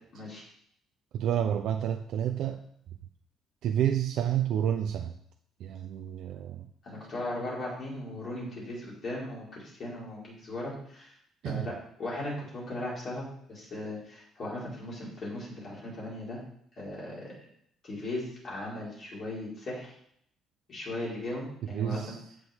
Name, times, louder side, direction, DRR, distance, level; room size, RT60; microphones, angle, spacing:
voice 1, 0.1-0.4 6.8-11.1 11.4-11.7 12.0-16.4 16.7-17.3 17.8-19.9 20.7-22.1, left 1 dB, 35° left, -5 dB, 4.7 m, -37 dB
voice 2, 1.1-2.6 3.6-5.1 5.6-6.7 11.4-11.7 21.7-22.2, right 10 dB, 60° right, 4 dB, 0.6 m, -29 dB
16.0 x 6.6 x 3.6 m, 0.69 s
cardioid pair, 170°, 0 cm